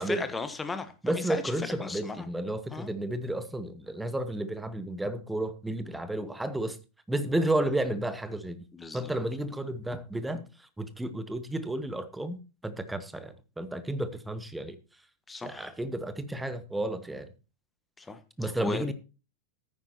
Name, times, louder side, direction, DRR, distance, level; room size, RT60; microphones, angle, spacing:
voice 1, 0.0-1.5 1.8-2.3 2.7-2.9 8.7-9.1 15.3-15.7 18.0-18.9, left 3 dB, 10° left, 1.3 m, -36 dB
voice 2, 1.0-6.8 7.1-8.6 8.9-10.4 10.8-14.8 15.4-17.3 18.4-18.9, right 1 dB, 5° right, 1.1 m, -32 dB
13.5 x 9.6 x 3.0 m
figure-of-eight pair, 90°, 0 cm